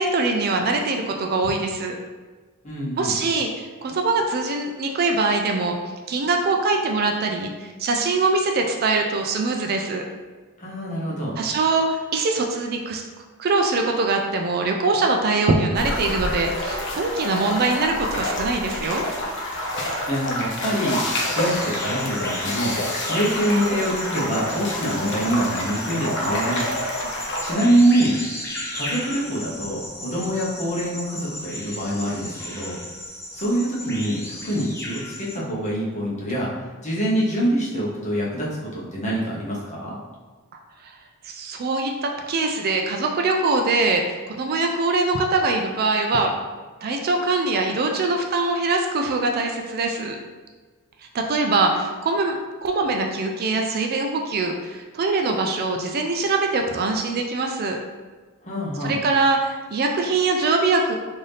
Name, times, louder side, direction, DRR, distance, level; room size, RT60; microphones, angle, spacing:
voice 1, 0.0-2.0 3.0-5.8 6.1-10.1 11.4-13.0 13.4-19.0 27.0-27.1 40.8-40.9 41.2-46.4 46.8-50.2 51.1-52.4 52.6-57.8 58.8-61.0, right 3 dB, 45° right, 3 dB, 0.4 m, -23 dB
voice 2, 2.6-3.2 10.6-11.4 20.1-21.0 21.3-22.8 23.1-26.6 27.4-28.1 28.7-32.8 33.3-36.5 36.8-40.0 58.4-59.0, right 1 dB, 35° left, -5 dB, 0.9 m, -25 dB
sound 1, 15.7-27.5, left 1 dB, 55° left, 0.7 m, -28 dB
sound 2, 21.1-35.4, left 1 dB, 10° left, 0.5 m, -35 dB
3.9 x 2.6 x 3.3 m, 1.3 s
head